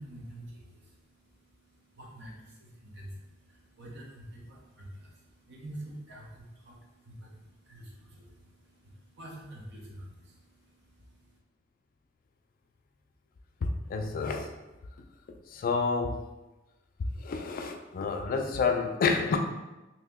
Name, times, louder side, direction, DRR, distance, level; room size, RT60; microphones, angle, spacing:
voice 1, 0.0-11.4, right 1 dB, 60° right, -2 dB, 0.8 m, -48 dB
voice 2, 13.6-14.5 15.3-16.2 17.2-19.4, left 4 dB, 45° left, 4 dB, 0.3 m, -29 dB
2.8 x 2.8 x 3.4 m, 1.1 s
head